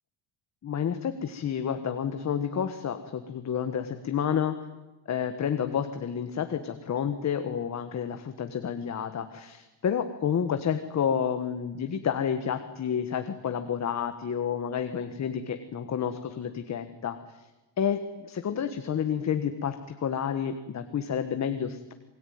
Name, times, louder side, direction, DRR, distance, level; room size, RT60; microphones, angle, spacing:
voice 1, 0.6-4.6 5.1-17.5 17.8-21.9, left 8 dB, 35° left, 8 dB, 1.5 m, -30 dB
28.0 x 21.5 x 9.5 m, 1.1 s
cardioid pair, 170°, 47 cm